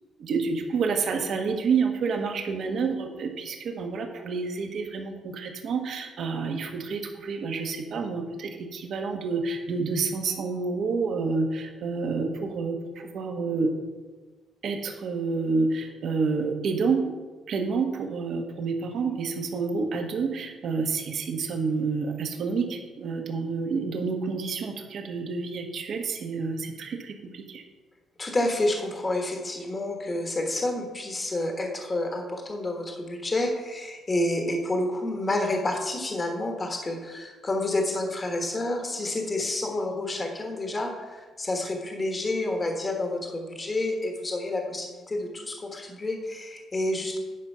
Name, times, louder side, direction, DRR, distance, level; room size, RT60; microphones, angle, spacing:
voice 1, 0.2-13.7 14.6-17.1 17.5-27.6, right 4 dB, 55° right, 4 dB, 1.3 m, -29 dB
voice 2, 28.2-47.2, left 2 dB, 20° left, 3 dB, 1.3 m, -29 dB
10.0 x 5.3 x 5.5 m, 1.3 s
cardioid pair, 150°, 0 cm